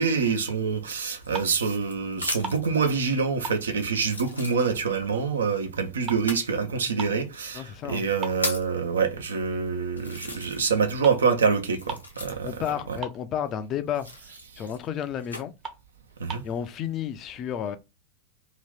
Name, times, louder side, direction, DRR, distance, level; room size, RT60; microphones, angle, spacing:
voice 1, 0.0-12.5 16.2-16.4, right 5 dB, 70° right, 0.7 m, -26 dB
sound 1, 1.2-2.7 3.4-3.5 4.0-5.1 6.1-6.5 7.3-7.4 8.0-8.8 9.5-9.6 10.0-10.9 11.1-12.7 13.9-15.4 16.1-16.6, left 2 dB, 85° left, 0.9 m, -36 dB
sound 2, 1.3-1.7 2.0-3.1 3.4-4.9 5.3-7.3 7.7-7.8 8.2-9.3 9.7-9.9 10.7-10.8 11.0-11.3 11.5-11.6 11.8-12.2 12.5-12.6 12.8-13.6 14.1-14.2 14.6-14.7 15.1-15.2 15.6-16.6, right 5 dB, 30° right, 0.8 m, -39 dB
voice 2, 7.5-8.0 12.4-15.5 16.4-17.8, left 9 dB, 35° left, 0.4 m, -32 dB
2.8 x 2.5 x 3.4 m
figure-of-eight pair, 90°, 0 cm